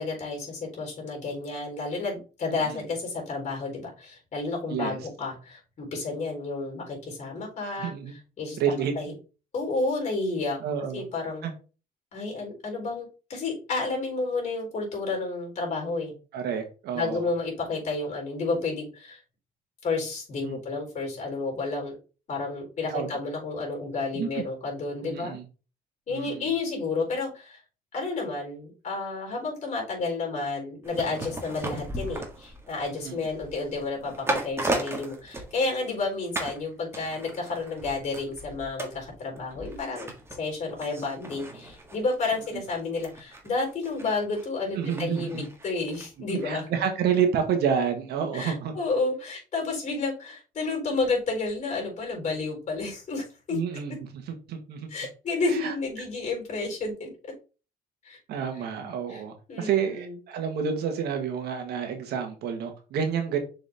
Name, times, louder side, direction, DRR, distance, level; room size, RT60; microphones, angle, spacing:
voice 1, 0.0-7.9 8.4-8.6 9.0-9.1 9.5-10.6 10.9-11.4 12.1-16.1 16.9-19.2 19.8-22.0 22.3-25.4 26.1-27.6 27.9-40.1 40.4-46.7 48.3-53.6 54.9-57.1 58.0-58.2 59.1-59.2 59.5-60.2, left 3 dB, 45° left, -1 dB, 3.9 m, -31 dB
voice 2, 4.7-5.0 7.8-8.1 8.6-8.9 10.6-11.0 11.4-11.5 16.3-17.2 20.4-20.6 22.9-23.2 24.1-24.4 25.0-25.4 26.1-26.5 33.0-33.2 44.7-45.4 46.4-48.7 53.5-54.0 54.3-54.9 55.5-55.7 58.3-63.4, right 7 dB, 75° right, 6 dB, 1.6 m, -29 dB
sound 1, 30.8-36.0 36.3-36.6 36.9-46.1 46.4-46.5, right 2 dB, 15° right, 1.7 m, -37 dB
6.7 x 4.8 x 3.5 m, 0.34 s
cardioid pair, 110°, 17 cm